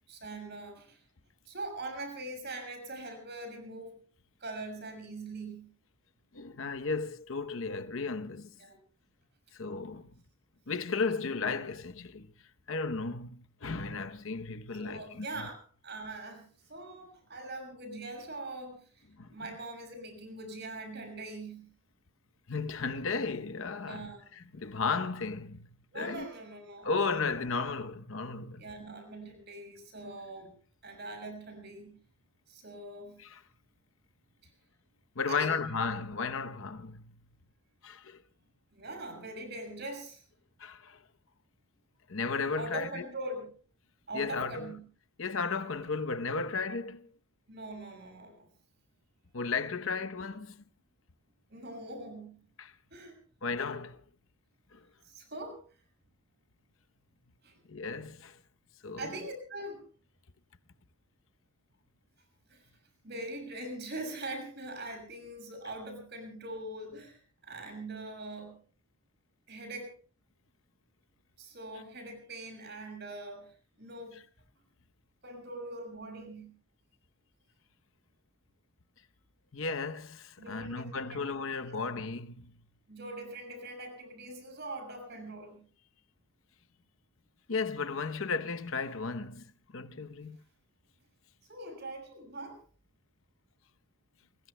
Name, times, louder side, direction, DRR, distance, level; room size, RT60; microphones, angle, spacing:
voice 1, 0.1-1.0 1.5-3.9 4.4-5.7 8.6-8.8 14.8-16.4 16.7-19.0 19.3-21.7 23.8-24.2 25.9-26.9 28.6-30.5 30.8-32.0 32.5-33.2 35.3-35.6 38.7-40.2 42.5-43.5 44.1-44.8 47.5-48.5 51.5-52.4 52.9-53.2 55.0-55.6 57.4-57.5 59.0-59.8 62.5-62.6 63.0-68.6 69.5-69.9 71.4-74.2 75.2-76.5 80.4-81.2 81.7-81.8 82.9-85.6 91.4-92.6, right 2 dB, 50° right, 6.5 m, -42 dB
voice 2, 6.3-8.5 9.5-10.1 10.7-12.3 12.7-15.5 19.2-19.3 22.5-25.7 25.9-26.3 26.8-28.6 33.2-33.4 35.2-37.2 37.8-38.2 40.6-41.0 42.1-43.0 44.1-44.7 45.2-47.1 49.3-50.6 52.6-52.7 53.4-54.0 54.7-54.8 57.7-58.4 58.8-59.1 79.5-82.5 87.5-89.4 89.7-90.4, left 4 dB, 65° left, 0.8 m, -34 dB
29.0 x 22.0 x 2.2 m
head